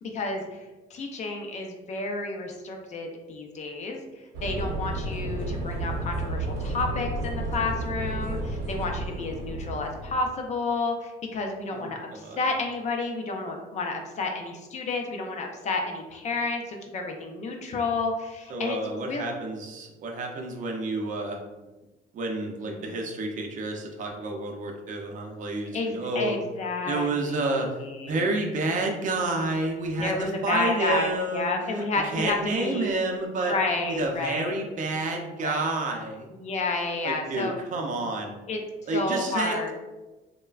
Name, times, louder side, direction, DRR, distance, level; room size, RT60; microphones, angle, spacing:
voice 1, 0.0-19.3 22.8-22.9 25.7-28.2 30.0-33.0 33.4-34.5 35.3-35.6 36.3-37.5 38.5-38.6 38.9-39.7, left 3 dB, 45° left, 3 dB, 0.4 m, -31 dB
sound 1, 4.3-10.3, right 2 dB, 90° right, 0.7 m, -32 dB
voice 2, 11.7-12.4 18.5-21.4 22.1-26.4 26.9-27.7 28.1-31.8 32.1-33.6 33.9-36.3 37.0-38.4 38.9-39.7, right 2 dB, 50° right, 2 dB, 0.5 m, -29 dB
3.2 x 2.1 x 2.3 m, 1.1 s
cardioid pair, 110°, 17 cm